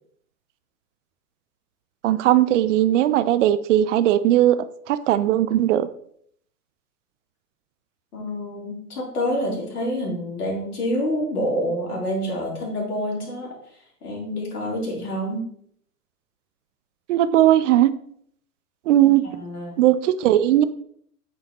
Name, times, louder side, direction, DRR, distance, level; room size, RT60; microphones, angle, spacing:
voice 1, 2.0-4.6 4.9-5.9 17.1-17.9 18.9-19.2 19.8-20.6, right 12 dB, 55° right, 14 dB, 0.5 m, -18 dB
voice 2, 8.1-13.6 14.0-15.5 19.0-19.8, equal, 75° left, -2 dB, 2.7 m, -27 dB
8.3 x 4.3 x 2.9 m, 0.66 s
hypercardioid pair, 115°, 46 cm